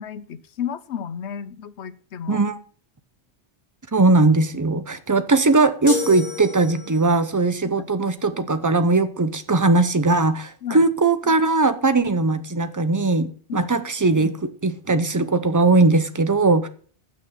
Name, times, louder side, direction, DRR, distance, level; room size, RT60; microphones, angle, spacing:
voice 1, 0.0-2.4 7.6-7.9 10.6-10.9 13.5-13.7, left 8 dB, 80° left, 1.1 m, -33 dB
voice 2, 2.3-2.6 3.9-16.7, right 3 dB, 20° right, 0.7 m, -19 dB
sound 1, 5.9-7.2, left 4 dB, 25° left, 2.9 m, -30 dB
9.0 x 6.3 x 5.9 m
omnidirectional pair, 1.2 m